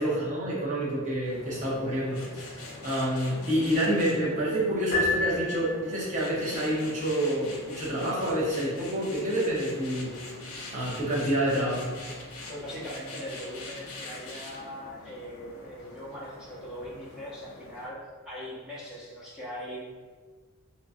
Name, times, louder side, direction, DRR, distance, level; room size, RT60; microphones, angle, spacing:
voice 1, 0.0-10.1 10.7-11.9, right 1 dB, 35° right, -6 dB, 0.8 m, -28 dB
sound 1, 1.2-17.9, left 2 dB, 90° left, 0.7 m, -44 dB
Piano, 4.9-6.2, left 2 dB, 50° left, 0.9 m, -29 dB
voice 2, 12.5-19.8, equal, 5° right, -8 dB, 0.7 m, -40 dB
3.0 x 2.4 x 2.5 m, 1.4 s
head